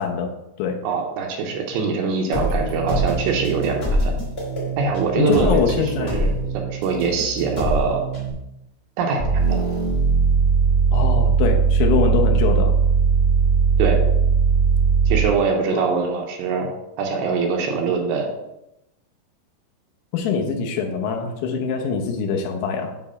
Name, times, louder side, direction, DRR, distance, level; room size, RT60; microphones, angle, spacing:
voice 1, 0.0-0.8 5.2-6.2 10.9-12.7 15.7-15.8 20.1-22.9, left 6 dB, 80° left, 3 dB, 3.0 m, -23 dB
voice 2, 0.8-4.1 4.8-6.3 6.6-8.0 9.0-9.6 13.8-14.0 15.1-16.7 17.0-18.3, right 5 dB, 75° right, 2 dB, 2.9 m, -23 dB
sound 1, 2.3-8.3, right 1 dB, 20° left, 1.8 m, -25 dB
sound 2, 9.2-15.4, right 6 dB, 50° left, 0.6 m, -18 dB
9.8 x 3.4 x 5.7 m, 0.88 s
omnidirectional pair, 5.4 m